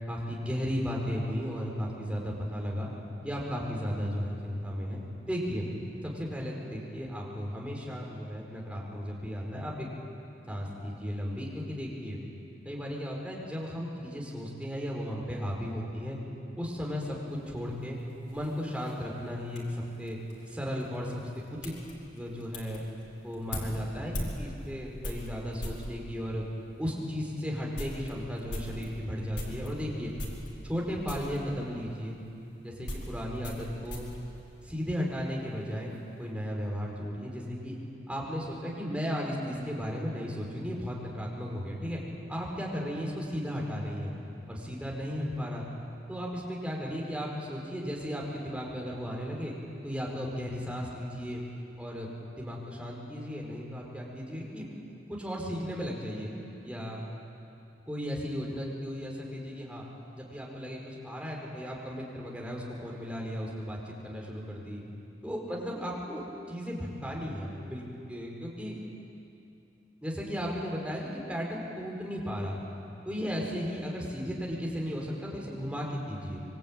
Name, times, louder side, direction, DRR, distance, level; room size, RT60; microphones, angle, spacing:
voice 1, 0.1-2.9 3.2-5.0 5.3-5.6 6.0-9.9 10.5-12.2 12.6-16.2 16.5-18.0 18.3-20.2 20.5-21.8 22.1-22.8 23.2-26.4 26.8-30.1 30.6-32.2 32.6-34.1 34.6-35.9 36.2-37.8 38.1-42.0 42.3-44.1 44.5-45.6 46.1-49.5 49.8-51.4 51.8-52.1 52.4-54.7 55.1-56.3 56.6-57.0 57.9-59.8 60.1-64.8 65.2-68.8 70.0-72.6 73.0-76.4, equal, 5° right, -2 dB, 5.0 m, -35 dB
sound 1, 17.3-25.9 26.7-26.8 27.2-27.3 27.6-29.7 30.2-30.8 31.1-31.4 32.3-35.2 35.4-36.0, left 1 dB, 75° left, 4.9 m, -41 dB
26.0 x 23.5 x 9.0 m, 2.8 s
head